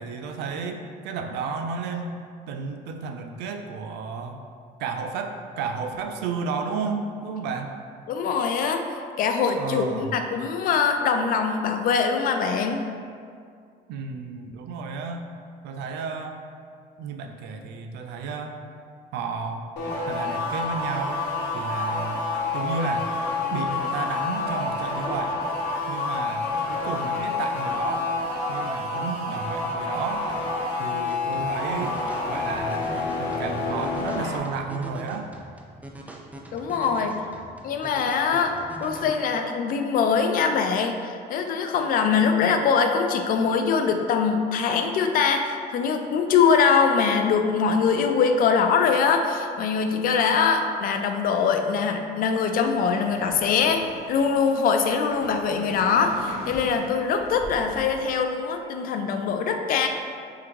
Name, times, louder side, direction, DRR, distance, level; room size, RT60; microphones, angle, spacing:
voice 1, 0.0-2.2 2.5-4.4 4.8-7.7 9.6-10.1 13.9-15.3 15.6-16.4 17.0-18.6 19.1-19.7 20.1-21.2 21.5-22.3 22.5-23.1 23.5-25.4 25.9-30.3 30.8-32.0 32.3-32.8 33.2-35.3, right 5 dB, 85° right, 5 dB, 0.4 m, -32 dB
voice 2, 8.1-12.9 36.5-37.2 37.6-59.9, left 6 dB, 55° left, 5 dB, 0.4 m, -23 dB
sound 1, 19.8-34.4, left 3 dB, 80° left, 0.9 m, -28 dB
sound 2, 31.1-39.1, equal, 10° right, 0.4 m, -42 dB
sound 3, 52.5-57.8, equal, 40° right, 0.8 m, -42 dB
3.7 x 3.3 x 3.1 m, 2.2 s
cardioid pair, 110°, 17 cm